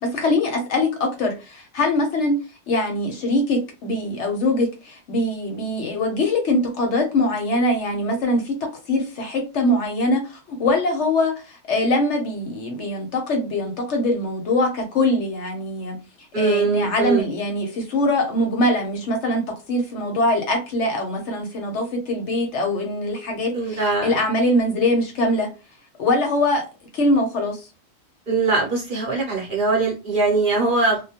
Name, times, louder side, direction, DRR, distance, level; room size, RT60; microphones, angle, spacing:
voice 1, 0.0-2.4 2.7-8.5 8.9-16.0 16.4-19.4 19.7-25.5 26.0-26.7 26.9-27.7, left 1 dB, 65° left, 3 dB, 0.9 m, -22 dB
voice 2, 16.3-17.2 23.5-24.2 28.3-31.0, right 3 dB, 45° right, -3 dB, 0.8 m, -21 dB
2.2 x 2.2 x 2.7 m, 0.30 s
omnidirectional pair, 1.4 m